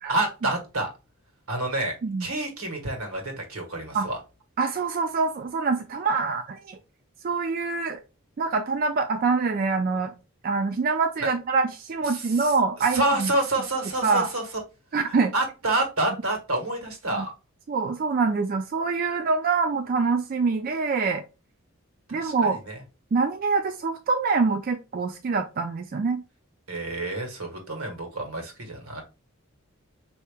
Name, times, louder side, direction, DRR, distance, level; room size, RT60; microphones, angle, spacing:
voice 1, 0.1-0.9 1.5-4.2 11.2-11.3 12.1-12.5 12.9-14.4 15.3-17.3 22.1-22.8 26.7-29.0, right 2 dB, 85° right, 2 dB, 1.5 m, -28 dB
voice 2, 4.6-6.8 7.2-8.0 8.4-10.1 10.4-13.3 14.0-14.3 14.9-15.3 17.1-17.2 17.7-21.2 22.1-22.6 23.1-26.2, right 4 dB, 40° right, 6 dB, 0.3 m, -25 dB
4.6 x 2.8 x 3.4 m, 0.29 s
head